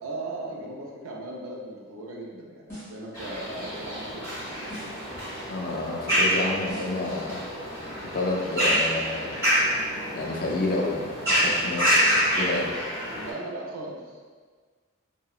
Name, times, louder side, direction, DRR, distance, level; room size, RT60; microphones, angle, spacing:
voice 1, 0.0-4.5 13.2-14.0, right 2 dB, 70° right, -2 dB, 0.4 m, -37 dB
sound 1, 2.7-3.1 4.7-5.1 6.7-7.1 8.7-9.1, equal, 10° left, 1.1 m, -42 dB
sound 2, 3.1-13.3, equal, 10° right, 1.3 m, -27 dB
voice 2, 5.5-7.4 8.0-9.3 9.9-12.7, left 2 dB, 40° left, -1 dB, 0.3 m, -30 dB
2.7 x 2.0 x 2.4 m, 1.5 s
head